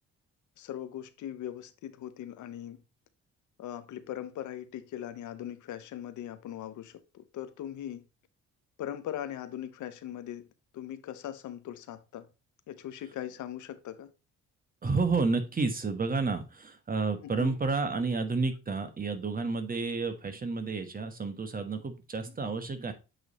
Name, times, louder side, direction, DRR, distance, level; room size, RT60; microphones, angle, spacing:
voice 1, 0.6-2.8 3.6-8.0 8.8-10.5 10.7-12.3 12.7-14.1 17.2-17.5, left 11 dB, 75° left, 0.7 m, -40 dB
voice 2, 14.8-22.9, right 4 dB, 30° right, 1.2 m, -30 dB
8.0 x 3.2 x 4.0 m
cardioid pair, 90°, 30 cm